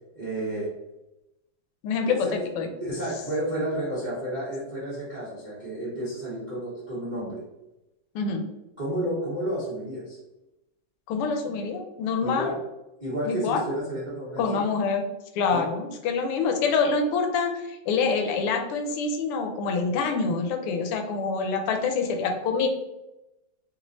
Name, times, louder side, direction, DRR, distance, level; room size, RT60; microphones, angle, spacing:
voice 1, 0.1-0.7 2.0-2.4 2.8-7.4 8.8-10.2 12.2-12.5 13.0-14.4 15.5-15.7, right 1 dB, 40° right, -9 dB, 0.6 m, -31 dB
voice 2, 1.8-2.7 8.1-8.4 11.1-12.5 13.3-13.6 14.4-15.0 15.3-22.7, left 4 dB, 90° left, 4 dB, 1.5 m, -26 dB
3.5 x 3.1 x 2.5 m, 0.94 s
omnidirectional pair, 2.4 m